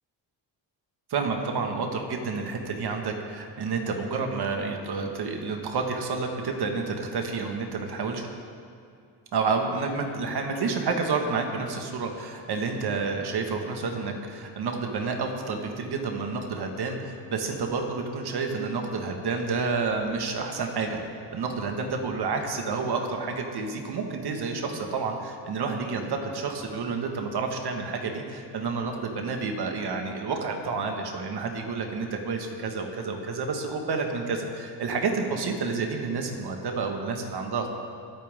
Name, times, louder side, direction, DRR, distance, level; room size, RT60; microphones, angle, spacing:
voice 1, 1.1-8.3 9.3-37.7, right 4 dB, 60° right, 3 dB, 2.0 m, -29 dB
22.0 x 9.2 x 3.8 m, 2.3 s
cardioid pair, 80°, 44 cm